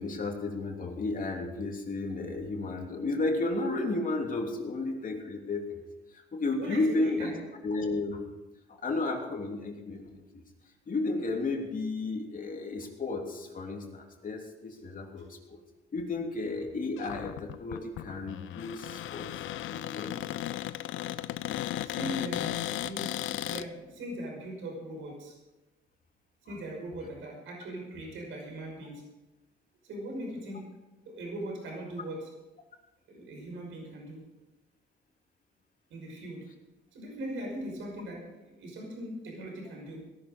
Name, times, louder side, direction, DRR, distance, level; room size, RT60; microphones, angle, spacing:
voice 1, 0.0-5.8 6.3-7.3 7.6-8.3 8.8-10.1 10.9-15.6 15.9-19.3 19.6-20.4, left 2 dB, 45° left, 1 dB, 3.1 m, -33 dB
voice 2, 6.6-7.4 21.8-25.4 26.5-29.0 29.8-30.6 31.1-32.3 33.1-34.2 35.9-36.5 36.9-40.0, right 1 dB, 80° right, 0 dB, 5.7 m, -40 dB
Cupboard open or close, 17.0-23.7, left 13 dB, 80° left, 0.6 m, -35 dB
18.0 x 11.5 x 5.1 m, 1.1 s
cardioid pair, 90°, 20 cm